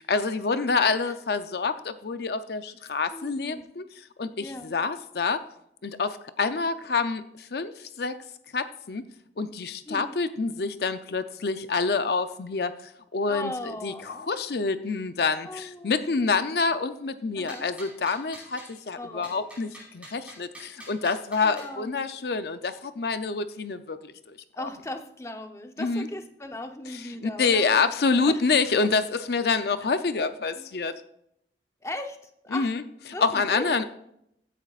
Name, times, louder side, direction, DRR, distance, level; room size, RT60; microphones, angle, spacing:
voice 1, 0.0-3.8 4.2-5.4 5.8-8.2 8.5-9.0 9.4-24.7 25.8-26.1 27.2-30.9 32.5-32.8 33.2-33.8, left 4 dB, 65° left, 10 dB, 0.5 m, -27 dB
voice 2, 3.1-3.6 4.4-4.8 9.8-10.2 13.3-14.3 15.5-16.4 17.3-17.7 18.9-19.5 21.4-22.0 24.5-27.8 28.1-28.4 30.5-30.8 31.8-32.7 33.1-33.8, left 1 dB, 15° left, 5 dB, 0.8 m, -38 dB
sound 1, 17.5-18.8 19.2-21.7, right 1 dB, 10° right, 4.8 m, -46 dB
15.5 x 10.0 x 2.4 m, 0.74 s
head